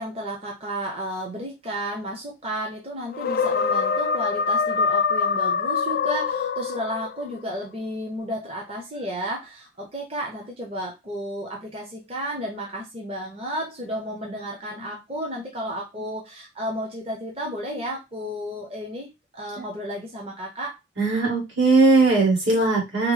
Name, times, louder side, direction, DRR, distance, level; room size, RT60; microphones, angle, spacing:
voice 1, 0.0-19.1 19.3-20.8, equal, 30° right, -1 dB, 0.7 m, -32 dB
sound 1, 3.1-7.2, left 5 dB, 50° left, 0.3 m, -24 dB
voice 2, 21.0-23.1, right 3 dB, 75° right, -3 dB, 1.6 m, -19 dB
3.6 x 2.0 x 3.2 m, 0.23 s
head